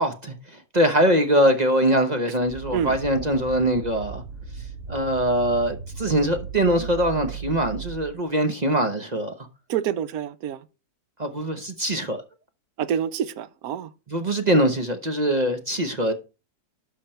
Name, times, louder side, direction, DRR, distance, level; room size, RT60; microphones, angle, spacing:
voice 1, 0.0-4.2 4.9-9.3 11.2-12.2 14.1-16.1, right 1 dB, 30° right, 0.9 m, -22 dB
sound 1, 2.4-8.2, right 6 dB, 50° right, 3.1 m, -37 dB
voice 2, 9.7-10.6 12.8-13.9, right 9 dB, 70° right, 1.2 m, -27 dB
12.0 x 5.6 x 4.4 m
omnidirectional pair, 1.7 m